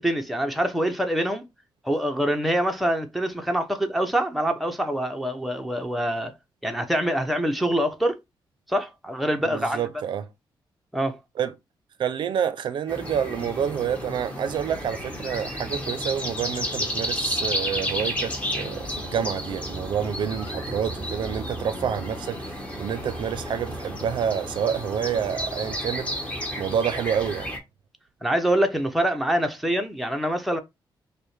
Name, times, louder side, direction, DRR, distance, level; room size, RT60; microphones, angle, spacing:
voice 1, 0.0-1.4 1.8-6.3 6.6-8.2 8.7-9.9 10.9-11.2 28.2-30.6, right 1 dB, ahead, 0.6 m, -25 dB
voice 2, 9.5-10.3 11.4-11.5 12.0-26.1 26.6-27.5, right 8 dB, 70° right, 0.5 m, -28 dB
sound 1, 12.9-27.6, equal, 15° left, 1.0 m, -32 dB
5.1 x 2.1 x 3.2 m
cardioid pair, 120°, 8 cm